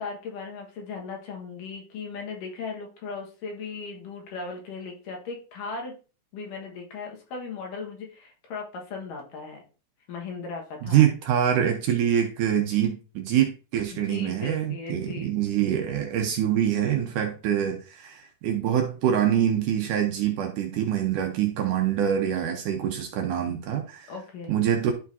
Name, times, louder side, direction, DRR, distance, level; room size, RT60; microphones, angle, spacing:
voice 1, 0.0-6.0 6.3-9.6 10.1-11.1 13.9-15.4 24.1-24.5, left 4 dB, 65° left, 1 dB, 2.9 m, -37 dB
voice 2, 10.8-24.1 24.5-24.9, right 10 dB, 70° right, 3 dB, 2.1 m, -25 dB
12.0 x 5.0 x 2.7 m, 0.35 s
omnidirectional pair, 4.2 m